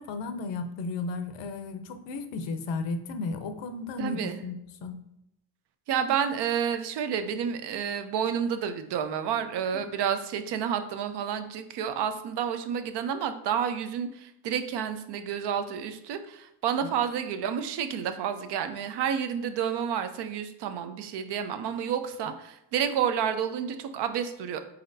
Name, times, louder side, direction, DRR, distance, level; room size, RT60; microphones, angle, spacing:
voice 1, 0.0-4.5 4.8-5.0 9.7-9.8 16.8-16.9, left 3 dB, 85° left, 9 dB, 0.6 m, -34 dB
voice 2, 4.0-4.4 5.9-24.6, right 8 dB, 70° right, 9 dB, 0.6 m, -30 dB
4.1 x 4.1 x 2.6 m, 0.83 s
cardioid pair, 140°, 42 cm